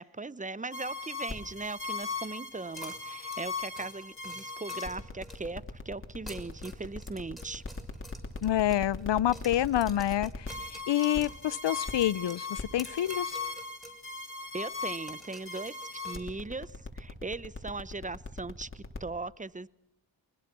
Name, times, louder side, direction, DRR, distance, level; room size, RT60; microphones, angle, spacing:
voice 1, 0.0-7.6 14.5-19.7, right 3 dB, 15° right, 0.8 m, -39 dB
sound 1, 0.7-19.0, left 3 dB, 25° left, 3.6 m, -39 dB
sound 2, 2.8-5.6 6.1-9.1 9.3-14.0 14.3-14.4 15.1-16.7, equal, ahead, 6.1 m, -50 dB
voice 2, 8.4-13.4, left 12 dB, 65° left, 0.7 m, -28 dB
23.0 x 20.5 x 6.1 m
cardioid pair, 50°, 46 cm